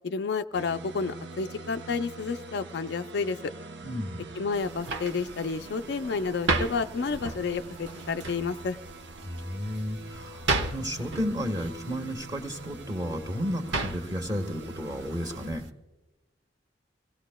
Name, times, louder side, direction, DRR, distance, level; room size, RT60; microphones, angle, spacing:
voice 1, 0.0-3.5 4.4-8.8, left 4 dB, 65° left, 9 dB, 0.4 m, -30 dB
sound 1, 0.5-15.5, right 3 dB, 65° right, 0.7 m, -45 dB
voice 2, 3.8-4.3 9.2-15.7, equal, 20° right, 3 dB, 1.4 m, -33 dB
sound 2, 4.5-15.7, right 3 dB, 80° right, 1.1 m, -35 dB
26.5 x 17.5 x 2.2 m, 1.1 s
head